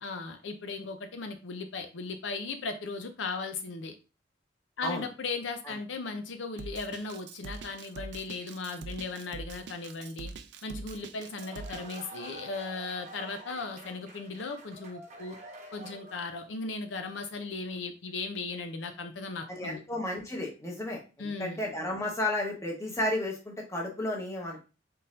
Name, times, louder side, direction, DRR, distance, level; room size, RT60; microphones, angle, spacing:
voice 1, 0.0-3.9 4.8-10.3 10.6-15.4 15.7-19.8 21.2-21.6, left 3 dB, 80° left, 7 dB, 0.6 m, -37 dB
Drum kit, 6.6-12.0, right 4 dB, 65° right, 0.4 m, -43 dB
sound 1, 11.1-16.4, right 2 dB, 40° right, 0.9 m, -47 dB
voice 2, 19.5-24.6, left 1 dB, 15° left, 0 dB, 1.1 m, -33 dB
4.1 x 3.8 x 2.5 m, 0.32 s
head